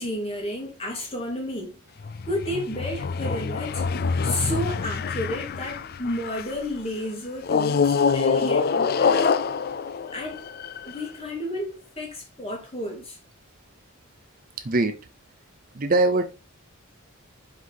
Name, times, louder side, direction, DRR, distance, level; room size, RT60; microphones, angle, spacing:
voice 1, 0.0-1.8 2.3-3.9 4.2-9.3 10.1-10.4 10.8-13.2, left 1 dB, 25° left, 2.2 m, -32 dB
sound 1, 2.0-6.6 7.4-11.0, left 5 dB, 45° left, 0.3 m, -25 dB
voice 2, 15.7-16.3, right 2 dB, 40° right, 0.6 m, -21 dB
6.1 x 5.1 x 3.5 m
head